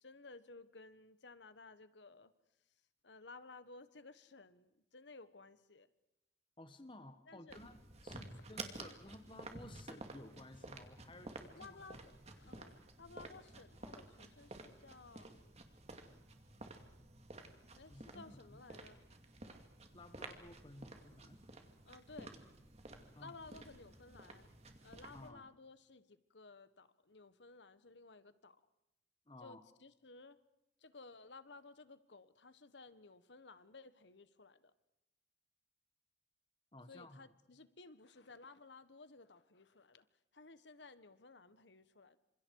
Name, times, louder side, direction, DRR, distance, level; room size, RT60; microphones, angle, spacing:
voice 1, 0.0-2.3 3.0-5.9 7.3-7.6 8.1-8.4 11.5-15.4 17.8-19.0 21.8-22.3 23.1-24.5 24.8-28.6 29.4-30.4 30.8-34.7 36.9-40.1 40.3-42.2, left 3 dB, 85° left, 13 dB, 1.4 m, -57 dB
voice 2, 6.6-11.9 12.4-12.5 17.9-18.6 19.9-21.4 23.1-23.4 25.1-25.5 29.3-29.6 36.7-37.2, left 1 dB, 30° left, 9 dB, 1.3 m, -55 dB
sound 1, 7.5-25.3, right 2 dB, 35° right, 2.4 m, -53 dB
29.0 x 26.5 x 4.8 m, 0.89 s
head